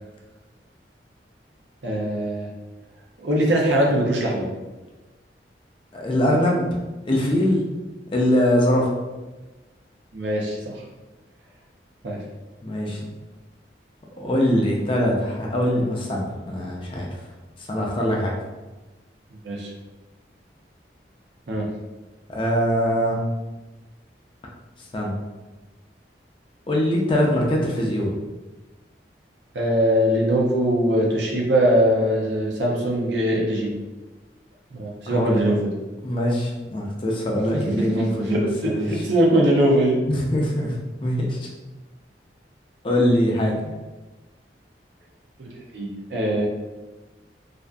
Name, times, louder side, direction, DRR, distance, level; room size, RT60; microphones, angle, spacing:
voice 1, 1.8-2.5 3.2-4.5 10.1-10.8 12.0-12.2 19.4-19.7 21.5-21.7 29.5-33.7 34.7-35.7 37.8-40.0 45.4-46.5, equal, 80° right, -2 dB, 0.6 m, -21 dB
voice 2, 5.9-6.7 7.1-7.6 8.1-8.9 12.6-13.0 14.2-17.2 17.6-18.3 22.3-23.2 24.9-25.1 26.7-28.1 35.1-35.4 36.0-39.0 40.1-41.5 42.8-43.7, equal, 30° left, -2 dB, 0.4 m, -22 dB
2.5 x 2.4 x 2.2 m, 1.2 s
head